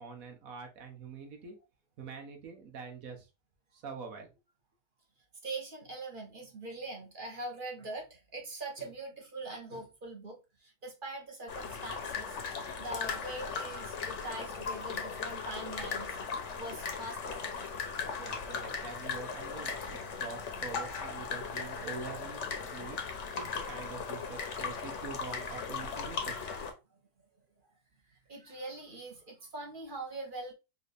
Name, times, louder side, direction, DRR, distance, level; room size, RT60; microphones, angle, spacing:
voice 1, 0.0-1.6 2.0-3.3 3.7-4.3 18.2-26.3, right 5 dB, 65° right, 1.5 m, -45 dB
voice 2, 5.4-16.2 16.6-17.5 28.1-30.5, right 2 dB, 40° right, 1.1 m, -42 dB
sound 1, 11.5-26.7, left 5 dB, 60° left, 1.0 m, -38 dB
4.6 x 2.7 x 3.3 m
omnidirectional pair, 1.6 m